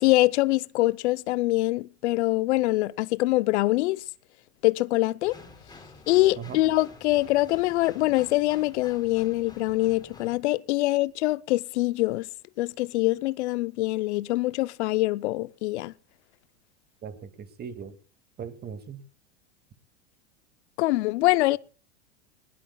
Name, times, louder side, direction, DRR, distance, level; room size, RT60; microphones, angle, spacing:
voice 1, 0.0-4.0 4.6-5.4 6.1-12.3 12.6-15.9 20.8-21.6, left 19 dB, 70° left, 0.6 m, -24 dB
sound 1, 5.2-10.4, left 3 dB, 10° left, 3.8 m, -49 dB
voice 2, 17.0-17.9 18.4-19.0, right 7 dB, 25° right, 2.1 m, -39 dB
20.5 x 20.5 x 2.3 m
supercardioid pair, 120°, 36 cm